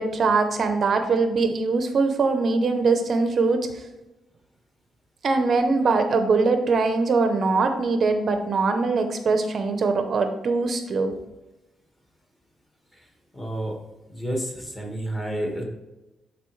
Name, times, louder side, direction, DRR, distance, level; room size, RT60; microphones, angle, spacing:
voice 1, 0.0-3.9 5.2-11.1, right 4 dB, 40° right, 7 dB, 0.7 m, -22 dB
voice 2, 13.3-13.8 14.1-15.6, right 1 dB, 10° left, -1 dB, 1.6 m, -30 dB
11.0 x 4.2 x 3.2 m, 1.0 s
cardioid pair, 160°, 0 cm